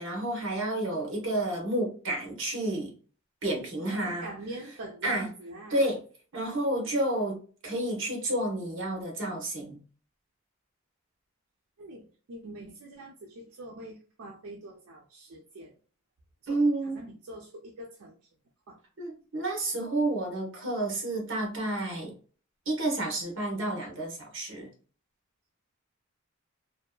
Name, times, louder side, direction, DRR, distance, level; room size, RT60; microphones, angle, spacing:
voice 1, 0.0-2.9 3.4-4.3 5.0-5.3 5.7-6.0 6.3-7.4 7.6-9.8 16.5-17.0 19.0-22.1 22.7-24.7, right 1 dB, 60° right, 1.0 m, -30 dB
voice 2, 3.8-5.9 6.3-7.0 11.8-15.8 16.4-18.2 18.7-18.8, right 1 dB, 85° right, 0.5 m, -44 dB
2.7 x 2.2 x 2.2 m
head